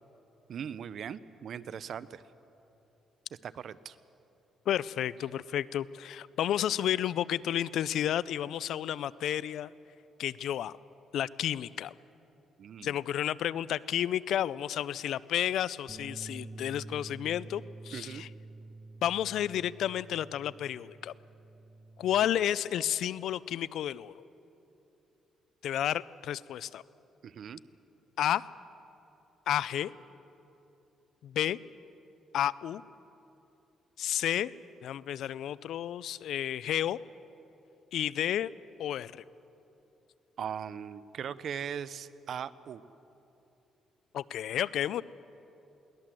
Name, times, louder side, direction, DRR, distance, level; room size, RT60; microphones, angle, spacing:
voice 1, 0.5-2.2 3.4-4.0 12.6-13.0 17.9-18.2 27.2-27.6 40.4-42.8, right 8 dB, 60° right, 16 dB, 0.7 m, -39 dB
voice 2, 4.7-9.7 10.2-10.7 11.1-11.9 12.8-18.3 19.0-21.1 22.0-24.2 25.6-26.8 28.2-28.5 29.5-29.9 31.2-31.6 32.3-32.8 34.0-34.5 34.8-37.0 37.9-38.5 38.8-39.2 44.1-45.0, left 11 dB, 75° left, 20 dB, 0.4 m, -31 dB
Bass guitar, 15.9-22.1, right 2 dB, 15° right, 2.2 m, -48 dB
22.5 x 18.0 x 7.6 m, 2.9 s
cardioid pair, 90°, 0 cm